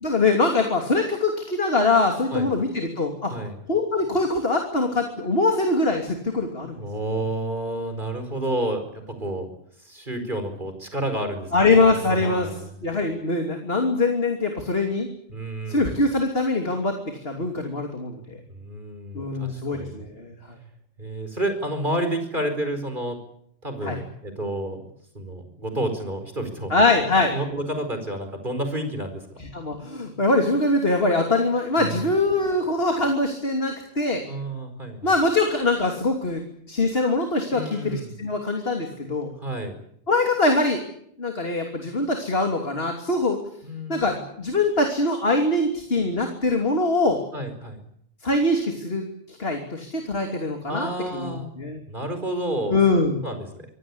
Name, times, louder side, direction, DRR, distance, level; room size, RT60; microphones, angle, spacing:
voice 1, 0.0-3.3 3.7-6.8 11.5-12.5 12.8-15.1 15.7-16.9 17.2-18.4 19.1-20.3 23.8-24.0 26.7-27.3 29.4-34.2 35.0-36.4 36.7-39.3 40.1-40.8 41.2-43.4 43.9-47.2 48.2-51.8 52.7-53.2, left 2 dB, 50° left, 4 dB, 3.2 m, -23 dB
voice 2, 6.8-9.5 9.8-11.5 11.9-12.8 15.3-16.1 18.5-20.0 21.0-23.2 23.6-24.8 25.1-26.8 27.3-29.2 31.8-32.0 34.3-35.1 37.5-38.1 39.4-39.7 43.6-44.2 47.3-47.8 50.7-51.5 51.9-53.7, right 1 dB, 40° right, 7 dB, 5.0 m, -30 dB
26.0 x 17.0 x 9.8 m, 0.70 s
omnidirectional pair, 1.3 m